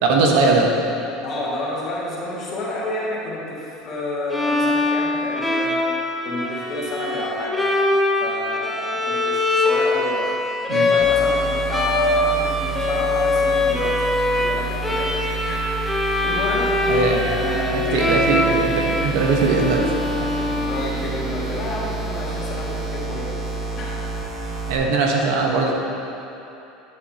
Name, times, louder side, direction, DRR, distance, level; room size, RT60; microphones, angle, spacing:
voice 1, 0.0-0.7 10.7-10.9 16.9-17.3 17.7-19.8 24.7-25.7, right 3 dB, 75° right, 0 dB, 1.2 m, -20 dB
voice 2, 1.2-5.8 6.2-7.6 8.2-10.3 10.7-14.1 14.4-18.2 20.6-24.0, left 1 dB, 40° left, -5 dB, 2.0 m, -30 dB
Bowed string instrument, 4.3-21.2, left 2 dB, 5° left, 0.7 m, -22 dB
sound 1, 11.0-24.8, right 3 dB, 30° right, 1.3 m, -29 dB
9.8 x 7.8 x 2.9 m, 2.9 s
supercardioid pair, 125°, 0 cm